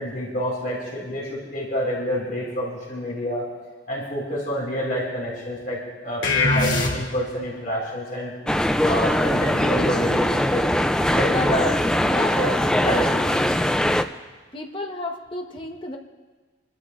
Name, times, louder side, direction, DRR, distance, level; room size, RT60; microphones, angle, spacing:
voice 1, 0.0-3.5 3.9-8.3 8.8-10.6 11.1-11.7 12.3-12.5 12.8-13.2, equal, 45° left, -5 dB, 4.3 m, -28 dB
sound 1, 6.2-7.4, left 3 dB, 70° left, 2.9 m, -22 dB
sound 2, 8.5-14.0, left 1 dB, 5° left, 0.3 m, -21 dB
voice 2, 11.1-12.4 12.8-13.1 14.5-16.0, left 2 dB, 25° left, 2 dB, 1.1 m, -31 dB
26.0 x 13.0 x 2.5 m, 1.4 s
head